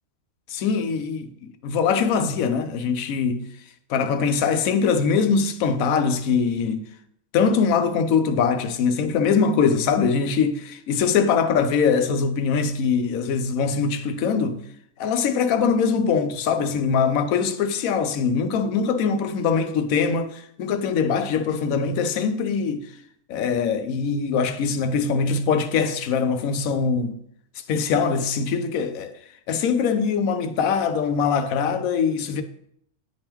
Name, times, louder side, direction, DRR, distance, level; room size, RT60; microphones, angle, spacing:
voice 1, 0.5-3.5 3.9-6.8 7.3-14.6 15.0-22.9 23.3-27.2 27.7-29.2 29.5-32.4, left 5 dB, 85° left, 1.0 m, -22 dB
9.5 x 3.5 x 3.0 m
omnidirectional pair, 1.4 m